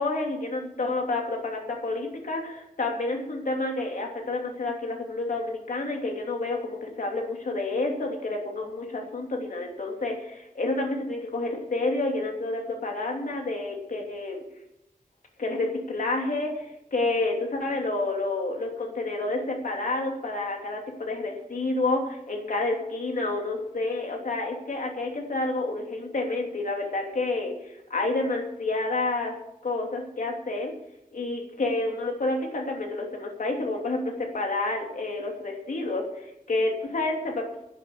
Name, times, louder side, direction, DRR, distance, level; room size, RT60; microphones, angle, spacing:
voice 1, 0.0-14.4 15.4-29.3 29.6-30.7 31.1-37.6, left 2 dB, 65° left, 1 dB, 2.9 m, -29 dB
12.0 x 10.5 x 7.0 m, 0.88 s
wide cardioid pair, 105°, 14 cm